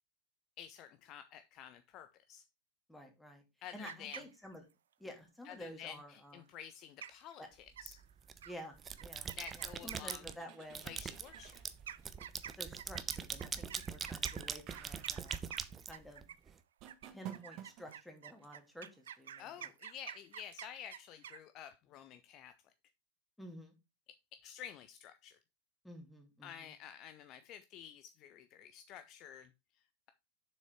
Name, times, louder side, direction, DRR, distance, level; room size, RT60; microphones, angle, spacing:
voice 1, 0.6-2.5 3.6-4.3 5.4-8.0 9.3-10.2 10.8-11.6 19.4-22.7 24.1-25.4 26.4-30.1, left 9 dB, 35° left, 0.7 m, -51 dB
voice 2, 2.9-3.4 3.7-4.6 5.0-6.5 7.4-7.5 8.4-10.9 12.5-15.4 15.9-16.2 17.1-19.7 23.4-23.7 25.8-26.7, equal, 5° left, 2.7 m, -51 dB
sound 1, 3.7-4.7 6.6-6.7 7.0-7.3 7.8-8.1 8.4-8.5 9.0-10.4 11.3-16.5 16.9-21.4, right 9 dB, 65° right, 0.6 m, -49 dB
sound 2, 7.8-8.4 8.8-10.3 10.7-16.5, right 6 dB, 20° right, 0.8 m, -42 dB
sound 3, 10.2-12.1 14.7-15.3 16.8-18.0, right 11 dB, 40° right, 1.3 m, -52 dB
7.4 x 6.3 x 4.6 m
figure-of-eight pair, 90°, 0 cm